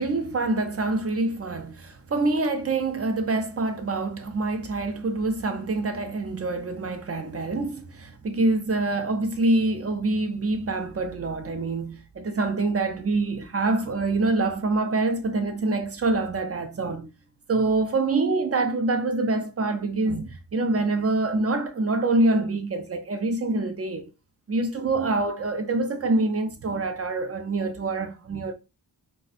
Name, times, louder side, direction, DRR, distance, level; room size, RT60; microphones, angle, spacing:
voice 1, 0.0-17.1 17.5-24.1 24.5-28.5, right 2 dB, 35° right, 0.6 m, -25 dB
2.4 x 2.2 x 4.0 m
wide cardioid pair, 85°, 40 cm